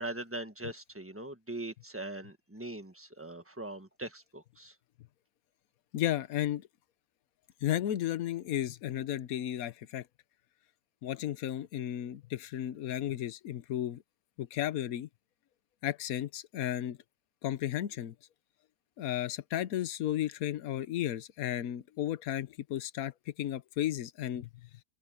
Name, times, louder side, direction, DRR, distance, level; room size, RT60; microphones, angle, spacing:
voice 1, 0.0-4.8, right 1 dB, 10° right, 1.4 m, -41 dB
voice 2, 5.9-6.7 7.6-10.1 11.0-14.0 14.4-15.1 15.8-17.0 17.4-18.1 19.0-24.7, left 12 dB, 65° left, 1.2 m, -34 dB
open air
omnidirectional pair, 1.7 m